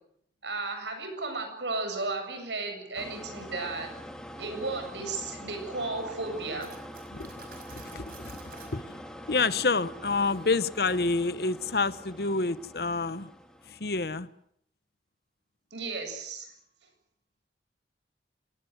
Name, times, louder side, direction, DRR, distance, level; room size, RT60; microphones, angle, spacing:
voice 1, 0.4-3.9 4.4-6.7 15.7-16.5, right 3 dB, 80° right, 6 dB, 7.9 m, -34 dB
sound 1, 2.9-14.2, equal, 5° left, 2.1 m, -45 dB
Cutlery silverware, 6.6-8.8, right 5 dB, 50° right, 5.4 m, -51 dB
voice 2, 7.7-8.4 8.7-8.8 9.3-13.3 13.7-14.3, left 3 dB, 60° left, 15 dB, 1.0 m, -28 dB
28.0 x 19.0 x 8.1 m, 0.71 s
head